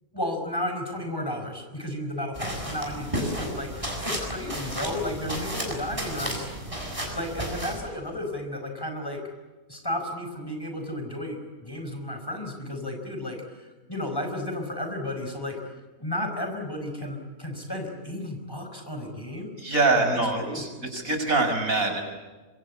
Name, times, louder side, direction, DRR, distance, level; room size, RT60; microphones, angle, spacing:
voice 1, 0.1-6.5 7.1-9.2 9.7-15.7 16.0-19.6 19.9-20.6, left 1 dB, 15° left, 4 dB, 5.0 m, -33 dB
sound 1, 2.3-7.8, equal, 20° right, 7.0 m, -33 dB
voice 2, 19.6-22.0, right 3 dB, 65° right, 5 dB, 6.1 m, -24 dB
26.5 x 25.0 x 8.5 m, 1.3 s
omnidirectional pair, 1.6 m